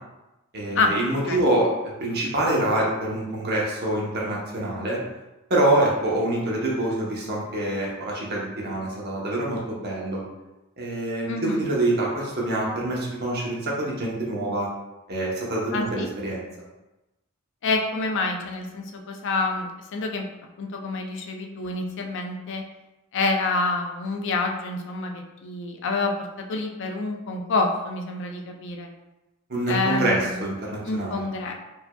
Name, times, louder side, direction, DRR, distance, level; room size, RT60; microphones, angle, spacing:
voice 1, 0.5-1.7 2.0-5.0 5.5-10.2 10.8-14.7 15.1-16.4 29.5-31.2, right 1 dB, 50° right, -3 dB, 0.9 m, -25 dB
voice 2, 11.3-11.7 15.7-16.1 17.6-20.3 20.6-22.6 23.1-28.9 29.7-30.4 30.9-31.5, left 3 dB, 60° left, 3 dB, 0.4 m, -27 dB
4.6 x 2.7 x 2.3 m, 1.0 s
head